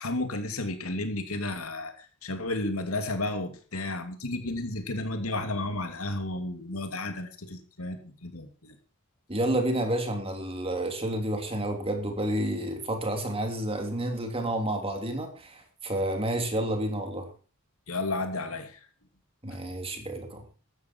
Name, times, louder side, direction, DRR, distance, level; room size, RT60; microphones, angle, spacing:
voice 1, 0.0-1.9 2.2-8.7 17.9-18.8, left 2 dB, 85° left, 6 dB, 2.8 m, -32 dB
voice 2, 9.3-17.3 19.4-20.4, right 1 dB, 25° right, 4 dB, 3.2 m, -30 dB
14.5 x 13.0 x 4.7 m, 0.38 s
head